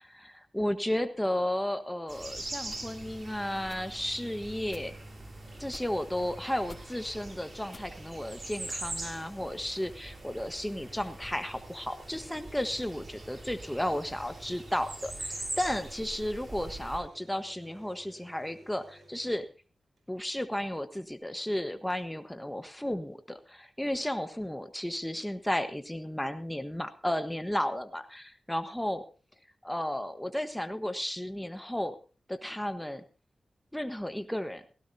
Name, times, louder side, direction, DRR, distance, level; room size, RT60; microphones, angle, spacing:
voice 1, 0.0-4.9 5.6-19.4 20.1-29.0 29.6-32.0 32.3-33.0 33.7-34.6, left 1 dB, 10° left, 9 dB, 1.3 m, -33 dB
sound 1, 2.1-17.0, right 2 dB, 45° right, 6.9 m, -43 dB
sound 2, 2.6-2.9 3.6-3.8 4.6-4.9 5.6-5.9 6.6-6.8 7.6-8.0 8.6-8.8 9.6-9.9, left 3 dB, 50° left, 2.9 m, -51 dB
sound 3, 5.4-20.0 21.4-21.5 21.6-22.1, right 1 dB, 75° right, 5.6 m, -56 dB
17.5 x 16.5 x 2.8 m, 0.34 s
cardioid pair, 45°, 0 cm